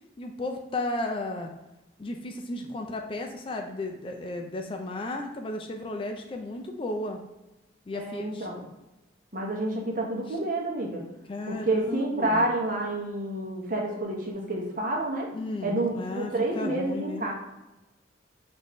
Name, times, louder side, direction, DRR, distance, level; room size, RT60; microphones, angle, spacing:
voice 1, 0.2-1.5 2.0-7.2 7.9-8.5 11.3-12.5 15.3-17.2, left 2 dB, 30° left, 3 dB, 0.4 m, -34 dB
voice 2, 7.9-8.6 9.3-11.1 11.5-15.3 15.6-17.3, right 1 dB, 45° right, -1 dB, 0.9 m, -29 dB
6.2 x 2.6 x 3.1 m, 1.0 s
head